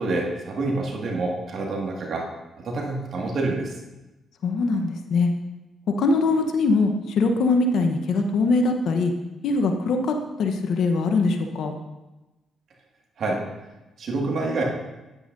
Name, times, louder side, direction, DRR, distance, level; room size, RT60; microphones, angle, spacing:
voice 1, 0.0-2.3 2.6-3.8 13.2-13.4 14.0-14.6, right 2 dB, 60° right, -1 dB, 1.9 m, -27 dB
voice 2, 4.4-5.3 6.0-9.1 9.4-11.7, left 3 dB, 70° left, 5 dB, 0.9 m, -22 dB
9.8 x 8.8 x 2.6 m, 1.0 s
supercardioid pair, 65°, 0 cm